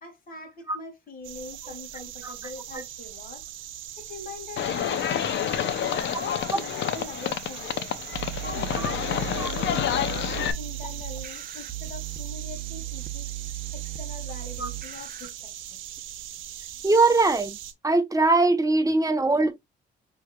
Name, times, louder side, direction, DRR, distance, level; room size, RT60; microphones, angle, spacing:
voice 1, 0.0-3.4 4.0-5.1 5.7-8.0 8.4-10.2 10.6-13.3 13.7-15.8, left 3 dB, 45° left, 2.2 m, -42 dB
sound 1, 1.2-17.7, right 11 dB, 90° right, 0.8 m, -40 dB
Livestock farm animals working animals, 4.6-10.5, left 10 dB, 65° left, 0.7 m, -28 dB
sound 2, 8.1-15.3, right 15 dB, 45° right, 0.8 m, -36 dB
voice 2, 16.8-17.6 17.8-19.5, right 3 dB, 15° right, 1.0 m, -21 dB
5.6 x 3.2 x 2.3 m
cardioid pair, 90°, 20 cm